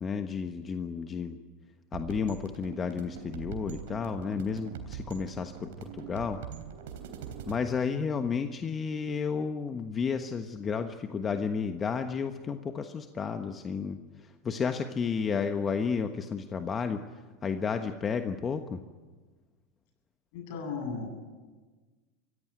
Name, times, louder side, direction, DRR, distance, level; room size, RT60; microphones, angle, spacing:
voice 1, 0.0-1.4 1.9-6.4 7.5-18.8, left 6 dB, 25° left, 7 dB, 1.3 m, -32 dB
sound 1, 1.9-7.6, right 8 dB, 75° right, 3.5 m, -42 dB
voice 2, 20.3-21.1, left 4 dB, 65° left, 4 dB, 8.0 m, -35 dB
24.5 x 16.5 x 9.0 m, 1.3 s
hypercardioid pair, 100°, 0 cm